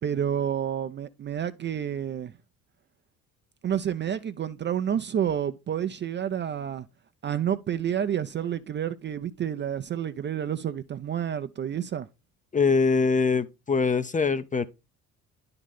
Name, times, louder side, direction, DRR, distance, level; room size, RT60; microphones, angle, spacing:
voice 1, 0.0-2.3 3.6-6.9 7.2-12.1, right 9 dB, 25° right, 0.5 m, -29 dB
voice 2, 12.5-14.6, left 4 dB, 20° left, 0.6 m, -23 dB
11.0 x 3.9 x 3.6 m
hypercardioid pair, 55°, 42 cm